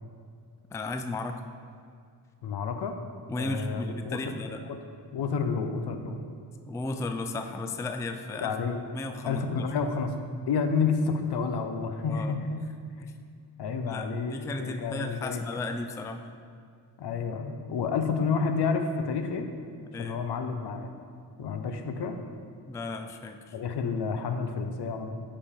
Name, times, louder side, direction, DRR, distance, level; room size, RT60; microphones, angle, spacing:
voice 1, 0.7-1.4 3.3-4.6 6.7-8.5 8.9-9.7 12.1-12.4 13.8-16.3 19.9-20.2 22.7-23.5, left 2 dB, 10° left, 7 dB, 0.3 m, -35 dB
voice 2, 2.4-3.0 3.4-4.3 4.7-4.8 5.1-6.2 8.4-8.8 9.3-10.1 10.5-12.6 13.0-13.1 13.6-15.6 17.0-19.5 20.0-20.9 21.4-22.2 23.5-25.1, left 5 dB, 70° left, 6 dB, 0.8 m, -30 dB
8.4 x 5.2 x 3.7 m, 2.2 s
cardioid pair, 70°, 42 cm